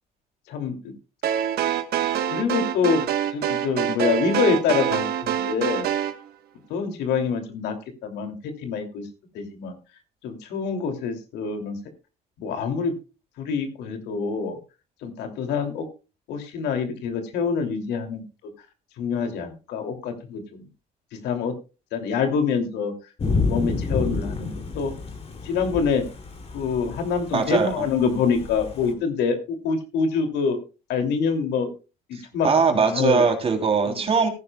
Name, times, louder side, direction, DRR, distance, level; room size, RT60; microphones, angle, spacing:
voice 1, 0.5-0.9 2.3-3.0 3.3-5.9 6.7-7.8 8.0-9.1 9.3-9.7 10.2-11.8 12.4-13.0 13.4-14.6 15.0-15.9 16.3-18.2 19.0-20.6 21.2-21.5 21.9-22.9 23.3-24.9 25.4-26.0 26.5-30.6 30.9-31.7 32.1-32.5 32.7-33.3 33.9-34.1, left 5 dB, 80° left, 5 dB, 2.8 m, -26 dB
sound 1, 1.2-6.2, right 10 dB, 70° right, 1.2 m, -25 dB
Thunder / Rain, 23.2-28.9, left 3 dB, 35° left, 3.0 m, -30 dB
voice 2, 27.3-27.9 32.4-34.3, right 5 dB, 35° right, 4 dB, 3.3 m, -21 dB
18.0 x 10.5 x 2.3 m, 0.31 s
cardioid pair, 110°, 17 cm